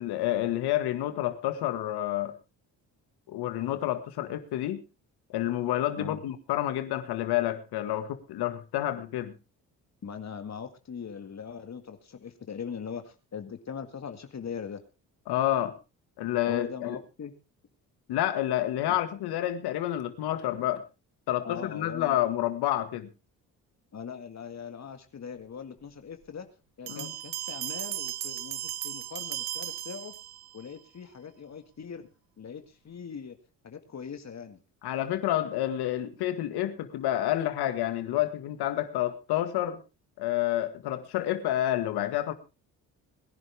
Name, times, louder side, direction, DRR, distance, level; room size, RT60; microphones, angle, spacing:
voice 1, 0.0-2.3 3.3-4.8 5.3-9.3 15.3-15.7 16.2-17.0 18.1-20.8 21.3-23.1 26.9-27.1 34.8-39.8 40.2-42.3, left 13 dB, 80° left, 10 dB, 2.0 m, -29 dB
voice 2, 10.0-14.8 16.5-17.3 21.4-22.2 23.9-26.5 26.8-30.1 30.5-32.0 32.4-33.4 33.6-34.6, left 6 dB, 45° left, 7 dB, 2.0 m, -40 dB
Bell, 26.9-30.6, right 13 dB, 80° right, 1.1 m, -36 dB
21.5 x 11.0 x 3.6 m, 0.29 s
supercardioid pair, 70°, 38 cm